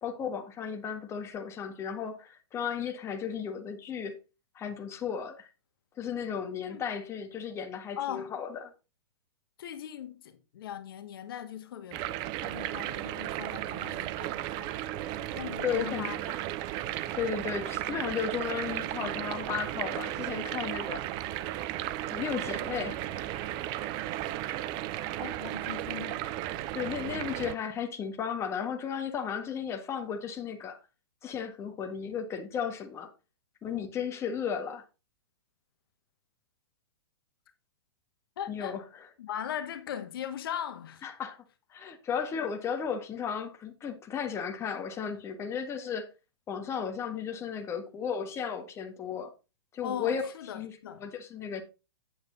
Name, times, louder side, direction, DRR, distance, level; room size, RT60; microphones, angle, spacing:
voice 1, 0.0-4.2 4.5-5.5 6.0-8.7 15.6-16.1 17.1-21.0 22.1-23.6 26.7-30.8 31.2-33.1 33.6-34.8 38.5-39.0 41.0-41.4 41.7-46.1 46.5-49.3 49.7-50.2 50.5-51.6, left 7 dB, 20° left, 1.6 m, -34 dB
voice 2, 8.0-8.3 9.6-14.7 15.3-16.4 25.2-26.2 38.4-38.8 39.2-41.0 49.8-51.1, left 10 dB, 60° left, 1.1 m, -39 dB
sound 1, 11.9-27.6, right 14 dB, 35° right, 0.5 m, -35 dB
8.8 x 6.8 x 4.0 m
hypercardioid pair, 130°, 13 cm